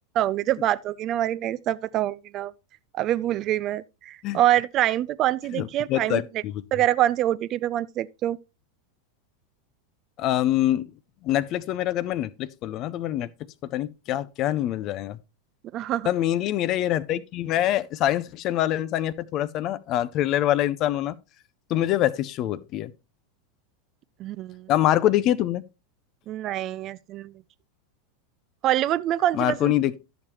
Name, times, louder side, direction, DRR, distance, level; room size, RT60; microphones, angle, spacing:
voice 1, 0.2-2.5 2.9-6.2 6.7-8.4 15.7-16.1 24.2-24.7 26.3-27.3 28.6-29.7, right 13 dB, 35° right, 0.3 m, -25 dB
voice 2, 5.5-6.5 10.2-10.9 11.2-13.3 13.7-15.2 16.0-21.1 21.7-22.9 24.7-25.6 29.3-29.9, left 13 dB, 40° left, 0.5 m, -25 dB
12.0 x 7.0 x 3.1 m
figure-of-eight pair, 85°, 0 cm